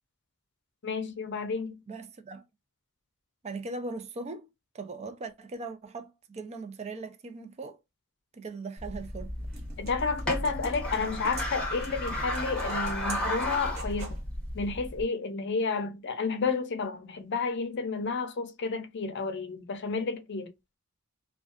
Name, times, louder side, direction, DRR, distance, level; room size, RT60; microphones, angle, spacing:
voice 1, 0.8-1.8 9.8-14.2 14.5-20.5, left 4 dB, 55° left, 0.5 m, -31 dB
voice 2, 1.9-2.4 3.4-4.5 4.7-7.8 8.3-9.3, right 3 dB, 30° right, 0.4 m, -39 dB
sound 1, 8.8-15.0, left 1 dB, 5° left, 0.9 m, -34 dB
sound 2, 9.0-14.2, right 2 dB, 45° right, 1.0 m, -46 dB
2.5 x 2.2 x 2.4 m
head